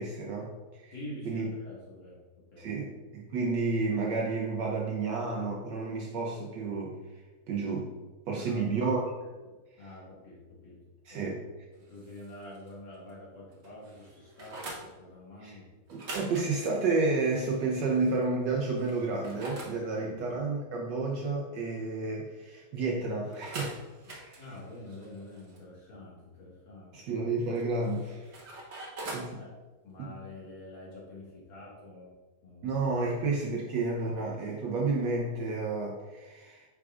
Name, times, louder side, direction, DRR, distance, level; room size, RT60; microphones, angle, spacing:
voice 1, 0.0-0.9 1.3-1.5 2.6-7.0 7.5-7.9 8.3-9.1 11.0-11.4 15.4-15.6 15.9-23.8 24.1-24.4 26.9-28.3 29.1-29.4 32.6-36.6, right 3 dB, 65° right, -1 dB, 1.3 m, -31 dB
voice 2, 0.9-2.7 8.3-8.6 9.8-10.8 11.1-11.3 11.9-15.7 20.0-20.2 24.4-27.1 29.4-29.5 29.8-32.1 32.4-32.8, left 1 dB, 65° left, -5 dB, 2.5 m, -47 dB
sound 1, 11.8-12.7 13.1-13.2 13.5-14.9 15.9-18.1 18.6-19.8 23.3-25.6 27.6-29.3, right 2 dB, 45° right, 1.0 m, -44 dB
8.1 x 4.8 x 2.4 m, 1.2 s
omnidirectional pair, 2.2 m